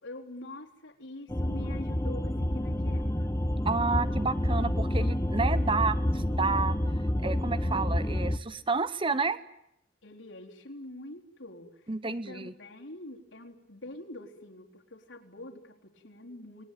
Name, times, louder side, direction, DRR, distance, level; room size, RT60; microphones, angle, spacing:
voice 1, 0.0-3.3 5.4-5.9 10.0-16.6, left 1 dB, 90° left, 0 dB, 3.9 m, -45 dB
sound 1, 1.3-8.4, left 1 dB, 15° left, 1.0 m, -28 dB
voice 2, 3.6-6.0 6.3-6.8 7.2-9.4 11.9-12.5, right 4 dB, 30° right, 15 dB, 1.0 m, -30 dB
29.0 x 20.0 x 9.3 m, 0.80 s
head